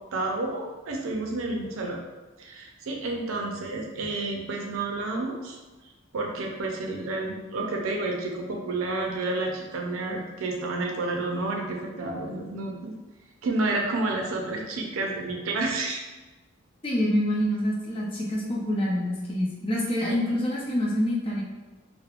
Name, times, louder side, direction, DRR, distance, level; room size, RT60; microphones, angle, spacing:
voice 1, 0.1-2.0 2.4-5.6 6.1-12.9 13.4-16.0 20.0-20.2, right 2 dB, 85° right, 1 dB, 0.5 m, -30 dB
voice 2, 16.8-21.4, equal, 25° left, -4 dB, 0.5 m, -26 dB
3.1 x 2.0 x 2.4 m, 1.2 s
head